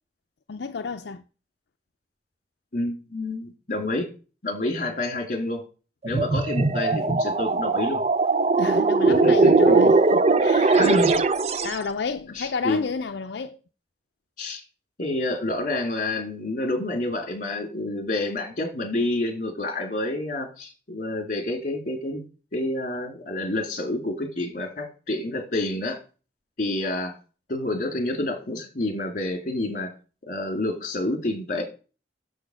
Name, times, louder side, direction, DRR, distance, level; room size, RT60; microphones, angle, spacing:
voice 1, 0.5-1.2 8.6-11.0 11.6-13.6, left 4 dB, 80° left, 0.5 m, -30 dB
voice 2, 2.7-4.1 4.4-5.6 6.0-8.0 9.1-9.8 10.7-11.1 12.3-12.8 14.4-14.6 15.0-22.2 22.5-26.0 26.6-27.1 27.5-29.9 30.3-31.6, left 2 dB, 45° left, 2.8 m, -28 dB
sound 1, 6.0-11.8, right 3 dB, 35° right, 0.5 m, -20 dB
7.1 x 6.4 x 6.3 m
head